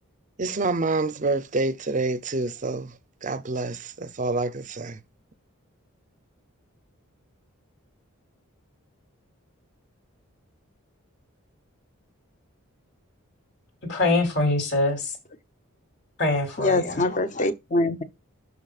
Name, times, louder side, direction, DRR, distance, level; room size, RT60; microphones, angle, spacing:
voice 1, 0.4-2.9 3.2-5.0, right 3 dB, 35° right, 0.5 m, -27 dB
voice 2, 13.9-15.1 16.2-17.0, left 2 dB, 50° left, 3.1 m, -24 dB
voice 3, 16.6-18.0, left 2 dB, 35° left, 0.7 m, -24 dB
12.0 x 4.8 x 2.4 m
head